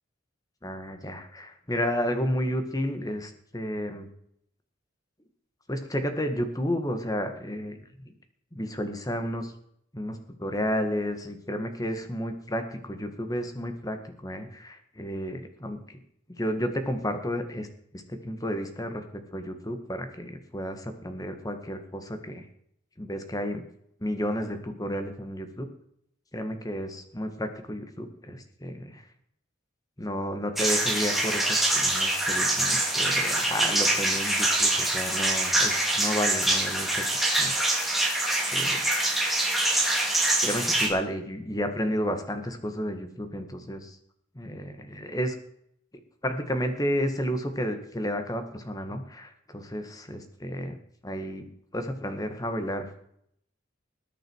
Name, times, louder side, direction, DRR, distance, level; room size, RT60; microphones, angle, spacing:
voice 1, 0.6-4.1 5.7-7.8 8.0-8.1 8.5-9.5 9.9-16.0 16.4-17.7 17.9-19.0 19.3-22.4 23.0-23.6 24.0-25.7 26.3-29.0 30.0-37.5 38.5-38.8 40.4-44.0 44.4-45.4 46.2-50.8 51.0-51.5 51.7-52.9, equal, 20° left, 7 dB, 1.7 m, -32 dB
sound 1, 30.6-40.9, right 2 dB, ahead, 3.1 m, -25 dB
20.0 x 9.0 x 4.7 m, 0.70 s
head